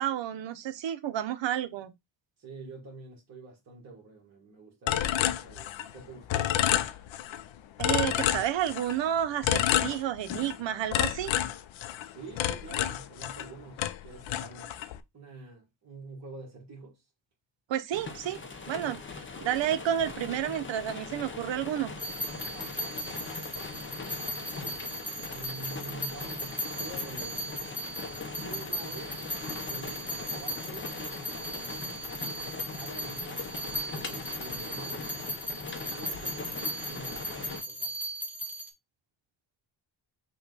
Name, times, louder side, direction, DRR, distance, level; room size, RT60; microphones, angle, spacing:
voice 1, 0.0-1.9 7.8-11.3 17.7-18.4 18.7-19.0 19.4-21.9, right 10 dB, 70° right, 0.7 m, -30 dB
voice 2, 2.4-6.9 12.1-14.9 15.1-17.0 22.5-23.3 25.3-27.5 28.4-29.2 29.6-31.3 32.7-33.5 33.9-35.1 35.9-37.9, right 3 dB, 35° right, 1.4 m, -47 dB
sound 1, 4.9-6.0 6.3-7.4 7.8-9.0 9.4-10.6 10.9-13.5 13.8-15.0, left 11 dB, 80° left, 0.6 m, -29 dB
sound 2, 17.9-37.6, left 4 dB, 25° left, 0.6 m, -40 dB
sound 3, 22.0-38.7, right 1 dB, 5° right, 0.9 m, -37 dB
5.7 x 2.3 x 3.9 m
wide cardioid pair, 150°, 46 cm